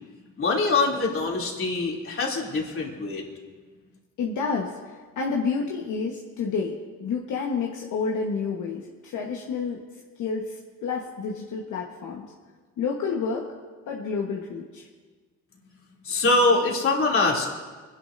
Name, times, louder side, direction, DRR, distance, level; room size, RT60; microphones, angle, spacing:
voice 1, 0.4-3.2 16.0-17.5, left 3 dB, 45° left, -2 dB, 2.8 m, -23 dB
voice 2, 4.2-9.8 10.2-12.3 12.8-13.5 13.9-14.9, left 5 dB, 75° left, -1 dB, 1.3 m, -29 dB
25.0 x 11.0 x 2.6 m, 1.4 s
cardioid pair, 90°, 30 cm